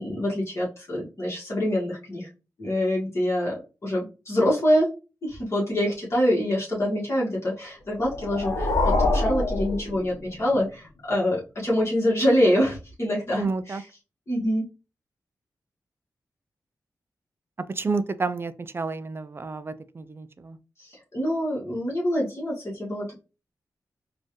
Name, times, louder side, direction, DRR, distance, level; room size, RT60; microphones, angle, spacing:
voice 1, 0.0-2.3 2.6-4.9 5.2-13.8 14.3-14.7 20.8-23.2, equal, 40° left, 1.5 m, -25 dB
sound 1, 7.9-10.6, left 2 dB, 75° left, 0.8 m, -25 dB
voice 2, 13.4-13.8 17.7-20.6, right 3 dB, 35° right, 0.4 m, -30 dB
4.3 x 2.4 x 3.1 m
cardioid pair, 70°, 7 cm